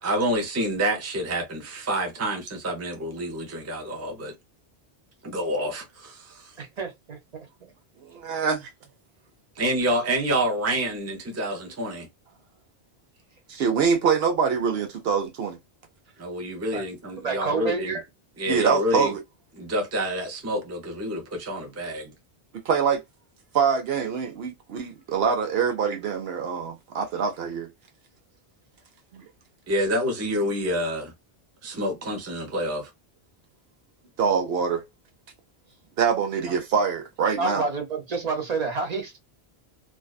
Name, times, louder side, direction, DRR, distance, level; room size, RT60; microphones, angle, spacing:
voice 1, 0.0-4.3 5.2-6.5 9.6-12.1 16.2-17.9 18.4-19.1 19.6-22.1 29.7-31.1 31.6-32.9, equal, 20° right, 0.5 m, -28 dB
voice 2, 6.6-7.5 16.7-16.8 17.2-18.0 37.4-39.2, right 4 dB, 40° right, 0.9 m, -29 dB
voice 3, 8.0-8.7 13.5-15.6 18.5-19.2 22.7-23.0 23.5-27.7 29.1-29.2 34.2-34.8 36.0-37.7, right 6 dB, 70° right, 0.8 m, -24 dB
2.5 x 2.2 x 2.2 m
omnidirectional pair, 1.1 m